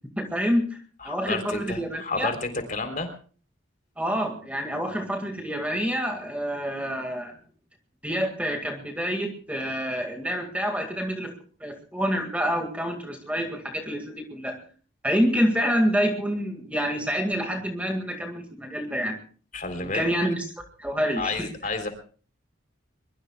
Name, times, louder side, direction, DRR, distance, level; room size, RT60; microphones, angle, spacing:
voice 1, 0.2-0.8 1.0-2.3 4.0-7.4 8.0-14.6 15.0-19.2 19.8-20.5 20.8-21.5, equal, 5° right, 3 dB, 2.1 m, -27 dB
voice 2, 1.0-3.1 19.5-20.1 21.2-21.9, left 3 dB, 40° left, 6 dB, 3.7 m, -31 dB
24.0 x 22.5 x 2.4 m, 0.42 s
head